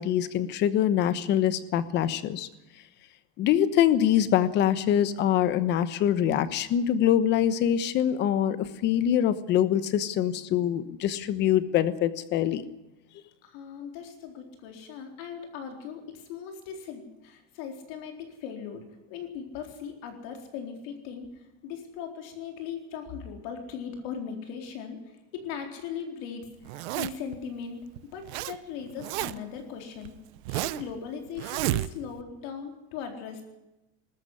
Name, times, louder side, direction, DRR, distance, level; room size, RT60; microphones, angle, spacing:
voice 1, 0.0-2.5 3.4-12.6, left 10 dB, 30° left, 14 dB, 1.1 m, -24 dB
voice 2, 13.4-21.3 21.6-25.0 25.3-27.8 28.1-30.1 30.5-33.4, left 7 dB, 50° left, 4 dB, 4.1 m, -39 dB
Zipper (clothing), 26.7-27.4 28.0-28.6 28.8-29.6 30.0-30.9 31.4-32.2, right 17 dB, 75° right, 0.9 m, -31 dB
21.0 x 13.5 x 9.9 m, 0.98 s
cardioid pair, 175°, 33 cm